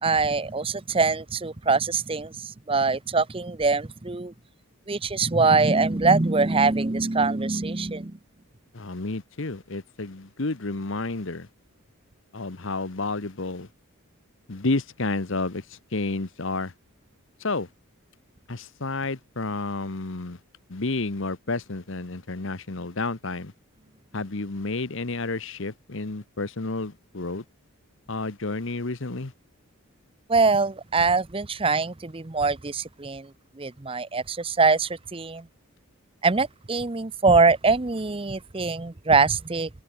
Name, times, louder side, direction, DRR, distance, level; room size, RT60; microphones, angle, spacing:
voice 1, 0.0-4.3 4.9-8.2 30.3-33.3 33.6-35.5 36.2-39.7, right 4 dB, 25° right, 0.7 m, -23 dB
voice 2, 8.7-11.5 12.3-13.7 14.5-16.7 17.4-17.7 18.5-20.4 20.7-23.5 24.1-27.4 28.1-29.3, left 3 dB, 60° left, 1.1 m, -30 dB
head